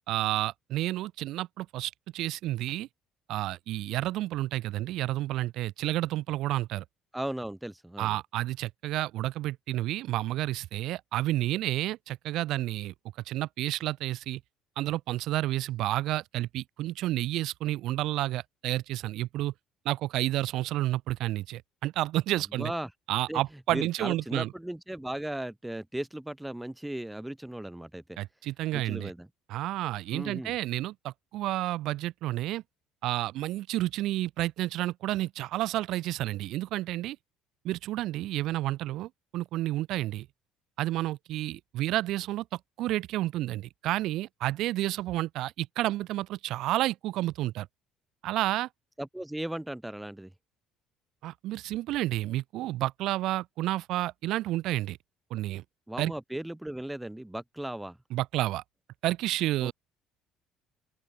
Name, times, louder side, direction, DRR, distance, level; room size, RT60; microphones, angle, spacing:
voice 1, 0.1-2.9 3.3-6.8 8.0-12.9 13.3-14.4 14.8-19.5 19.8-22.7 23.1-24.5 28.2-29.1 29.5-32.6 33.0-37.2 37.6-40.3 40.8-47.7 48.2-48.7 51.2-55.0 55.3-55.6 56.0-56.1 58.1-58.6 59.0-59.7, right 15 dB, 60° right, 0.8 m, -30 dB
voice 2, 7.1-8.2 22.5-22.9 23.3-23.4 23.7-28.2 28.7-29.3 30.1-30.6 49.0-50.3 55.9-58.0 59.6-59.7, right 1 dB, 5° right, 0.7 m, -36 dB
open air
cardioid pair, 155°, 0 cm